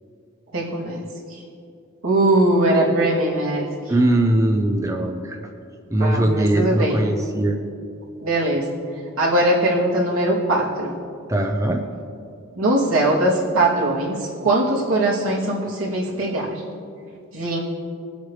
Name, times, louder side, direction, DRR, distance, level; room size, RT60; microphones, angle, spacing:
voice 1, 0.5-1.4 2.0-3.7 6.0-7.0 8.2-8.7 9.2-10.9 12.6-16.5 17.3-17.6, right 1 dB, 75° right, -5 dB, 2.9 m, -21 dB
voice 2, 3.9-5.4 5.9-7.6 11.3-11.8, right 1 dB, 15° right, 3 dB, 0.6 m, -20 dB
21.5 x 8.1 x 3.3 m, 2.5 s
head